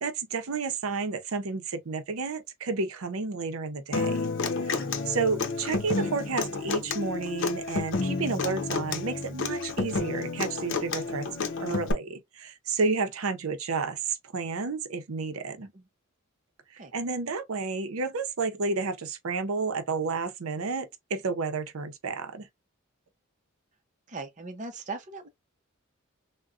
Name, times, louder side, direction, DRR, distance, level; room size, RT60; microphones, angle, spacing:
voice 1, 0.0-4.3 4.6-11.3 11.6-15.7 16.9-22.5, right 4 dB, 85° right, 0.7 m, -31 dB
Human voice / Acoustic guitar, 3.9-11.9, left 3 dB, 60° left, 0.7 m, -30 dB
voice 2, 6.0-6.4 15.7-15.9 16.8-16.9 24.1-25.3, right 3 dB, 35° right, 0.6 m, -39 dB
3.6 x 2.2 x 2.4 m
head